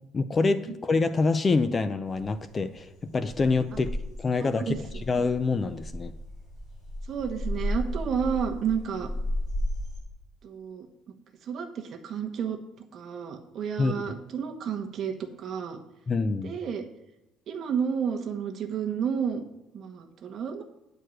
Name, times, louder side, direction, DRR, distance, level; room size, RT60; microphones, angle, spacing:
voice 1, 0.1-3.9 4.2-4.7 5.1-6.1 13.8-14.0 16.1-16.6, left 3 dB, 20° left, 12 dB, 0.4 m, -26 dB
sound 1, 2.0-10.0, left 1 dB, 40° left, 4.1 m, -34 dB
voice 2, 4.4-5.0 7.1-9.1 10.4-10.9 11.4-12.6 12.9-15.8 16.4-16.8 17.5-19.4 19.7-20.6, right 7 dB, 40° right, 3 dB, 1.2 m, -31 dB
9.6 x 4.6 x 7.7 m, 0.94 s
cardioid pair, 160°, 0 cm